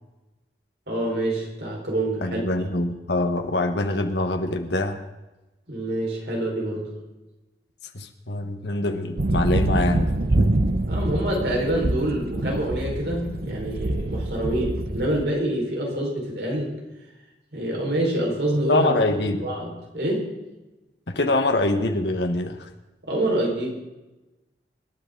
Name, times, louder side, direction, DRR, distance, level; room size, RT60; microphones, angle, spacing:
voice 1, 0.9-2.4 5.7-6.9 10.9-16.7 17.5-18.9 19.4-20.3 23.0-23.7, right 1 dB, 70° right, -1 dB, 4.8 m, -26 dB
voice 2, 2.2-5.0 7.9-10.5 18.7-19.5 21.1-22.7, left 2 dB, 80° left, 5 dB, 1.4 m, -24 dB
sound 1, 9.2-15.2, right 2 dB, 55° right, 0.7 m, -25 dB
25.5 x 11.0 x 3.9 m, 1.0 s
head